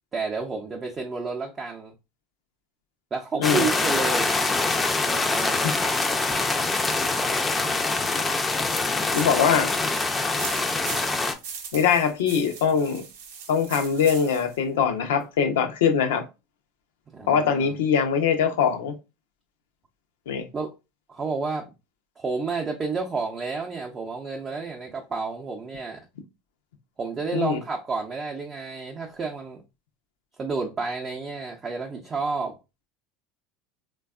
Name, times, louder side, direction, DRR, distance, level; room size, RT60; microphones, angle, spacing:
voice 1, 0.1-1.9 3.1-4.3 5.0-5.7 17.1-17.7 20.5-20.7 21.1-21.7 22.2-26.0 27.0-29.6 30.4-32.6, right 4 dB, 30° right, 0.5 m, -30 dB
sound 1, 3.4-11.3, left 3 dB, 20° left, 0.4 m, -24 dB
voice 2, 9.1-9.7 11.7-13.0 13.5-16.2 17.3-18.9 20.3-20.5 27.3-27.6, left 7 dB, 80° left, 0.5 m, -22 dB
sound 2, 9.1-14.6, right 6 dB, 80° right, 0.6 m, -39 dB
3.3 x 2.2 x 2.3 m
hypercardioid pair, 90°, 0 cm